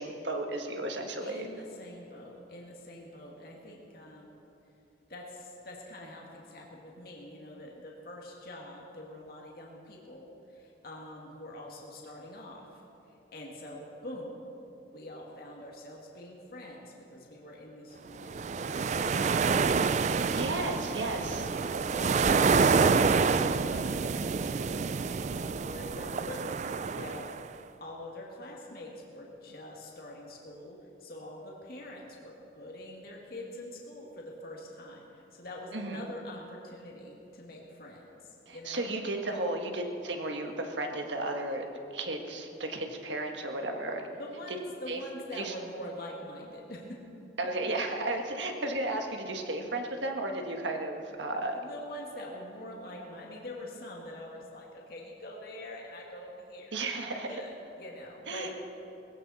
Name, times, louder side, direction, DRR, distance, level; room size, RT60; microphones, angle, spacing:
voice 1, 0.0-1.5 20.3-21.5 35.7-36.0 38.5-41.6 41.9-44.1 44.9-45.0 45.3-45.5 47.4-51.6 56.7-57.4 58.3-58.5, right 2 dB, 90° right, 3 dB, 1.6 m, -34 dB
voice 2, 1.2-4.3 5.1-12.8 13.1-14.4 14.9-20.9 21.8-22.6 22.8-23.2 23.4-27.3 27.8-38.9 39.3-39.4 44.1-47.0 51.5-58.5, left 1 dB, 55° left, -2 dB, 2.1 m, -45 dB
sound 1, 18.2-27.5, right 5 dB, 40° right, 0.3 m, -27 dB
19.5 x 16.0 x 4.3 m, 2.9 s
head